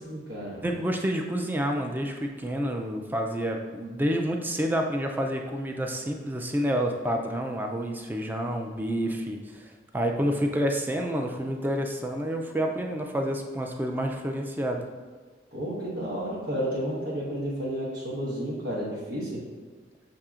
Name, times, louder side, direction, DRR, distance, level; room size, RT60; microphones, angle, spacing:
voice 1, 0.0-0.6 15.5-19.4, equal, 90° right, -8 dB, 1.0 m, -31 dB
voice 2, 0.6-14.9, equal, 10° right, 2 dB, 0.3 m, -29 dB
6.9 x 2.7 x 2.4 m, 1.5 s
head